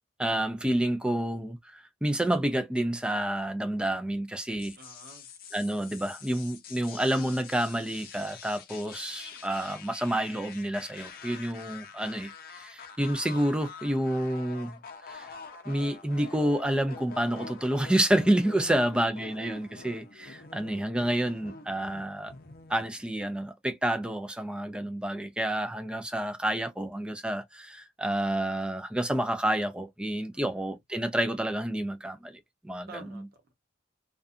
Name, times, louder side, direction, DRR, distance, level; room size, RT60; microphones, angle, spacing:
voice 1, 0.2-4.7 5.5-14.8 15.1-15.3 15.7-22.3 22.7-32.9, right 1 dB, 5° right, 0.3 m, -29 dB
sound 1, 4.6-23.0, left 5 dB, 50° left, 0.6 m, -46 dB
voice 2, 4.8-5.3 18.5-19.4 30.3-30.6 32.9-33.4, right 2 dB, 55° right, 1.0 m, -48 dB
2.6 x 2.3 x 2.4 m
head